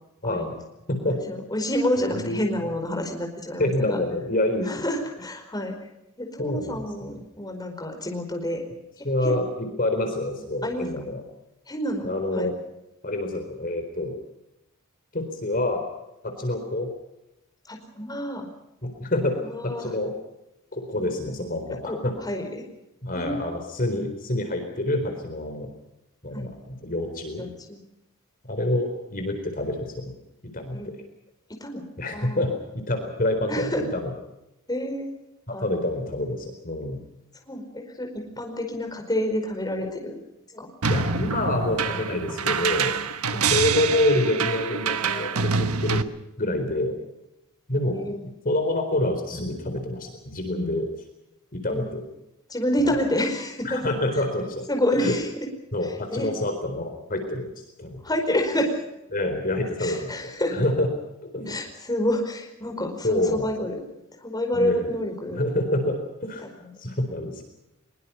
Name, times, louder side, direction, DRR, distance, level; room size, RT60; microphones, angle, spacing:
voice 1, 0.2-0.6 1.1-4.0 4.6-5.7 6.2-8.6 9.2-9.4 10.6-10.9 11.7-12.5 17.7-18.5 19.4-19.9 21.8-22.5 23.1-23.4 26.3-26.5 27.4-27.8 30.7-30.9 31.6-31.8 32.1-32.4 33.5-33.8 34.7-35.1 35.5-35.7 37.5-40.1 40.5-40.7 43.3-43.5 47.9-48.2 51.7-51.9 52.5-53.8 54.7-55.3 56.1-56.3 58.0-58.8 59.8-60.6 61.5-63.7 64.2-65.4 66.6-66.8, left 1 dB, 20° left, 3 dB, 4.9 m, -28 dB
voice 2, 2.0-2.4 3.6-4.8 6.4-7.1 9.0-11.2 12.0-12.5 13.0-14.2 15.1-15.9 16.2-16.9 18.8-19.3 19.6-20.1 20.7-22.1 23.0-25.7 26.2-27.4 28.5-30.1 30.5-30.8 32.0-32.5 32.8-34.1 35.5-37.0 40.8-42.9 43.3-46.0 46.4-47.0 47.7-50.9 51.5-52.0 52.8-52.9 53.6-54.7 55.0-55.2 55.7-57.5 57.8-58.0 59.1-60.9 61.2-61.6 63.0-63.8 64.5-64.9 65.4-66.4 66.8-67.4, left 1 dB, 40° left, 6 dB, 4.2 m, -27 dB
sound 1, 40.8-46.0, right 5 dB, 85° right, 1.4 m, -26 dB
23.5 x 23.0 x 5.6 m, 0.90 s
head